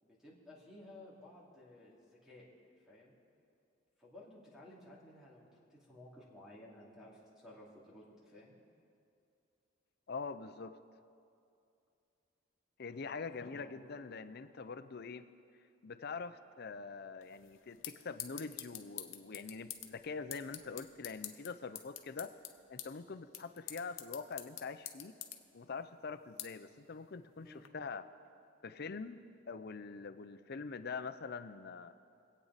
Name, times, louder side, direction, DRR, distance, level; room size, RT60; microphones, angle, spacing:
voice 1, 0.0-2.4 2.8-3.1 4.0-8.5 13.4-14.3 27.4-27.7, left 1 dB, 5° right, -5 dB, 2.6 m, -56 dB
voice 2, 10.1-10.8 12.8-15.3 15.8-22.3 22.7-25.2 25.5-28.0 28.6-31.9, left 4 dB, 55° left, 10 dB, 0.6 m, -44 dB
sound 1, 17.2-27.7, left 12 dB, 80° left, 0.9 m, -49 dB
24.0 x 8.5 x 4.1 m, 2.5 s
head